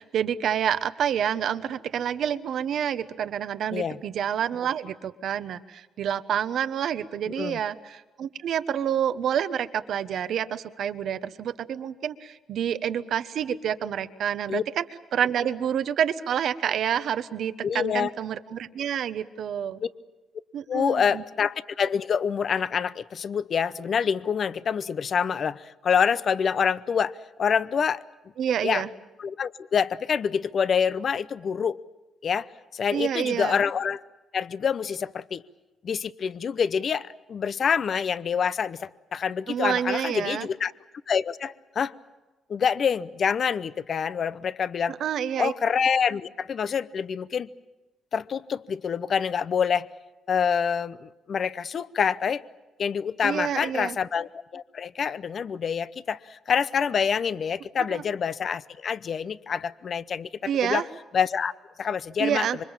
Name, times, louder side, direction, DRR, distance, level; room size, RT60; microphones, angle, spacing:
voice 1, 0.0-14.8 15.1-19.8 20.5-21.2 28.4-28.9 32.9-33.6 39.5-40.5 44.9-45.5 53.2-54.0 57.9-58.0 60.4-60.8 62.2-62.6, right 9 dB, 70° right, 1.2 m, -28 dB
voice 2, 17.6-18.1 20.7-28.0 28.6-28.8 29.2-31.8 32.2-32.5 32.7-34.0 34.3-35.4 35.8-40.7 41.1-41.9 42.5-44.9 45.4-47.5 48.1-49.9 50.3-52.4 52.8-60.3 60.6-60.8 61.1-61.5 61.8-62.5, left 7 dB, 50° left, 0.8 m, -26 dB
27.0 x 24.5 x 7.4 m
cardioid pair, 90°, 0 cm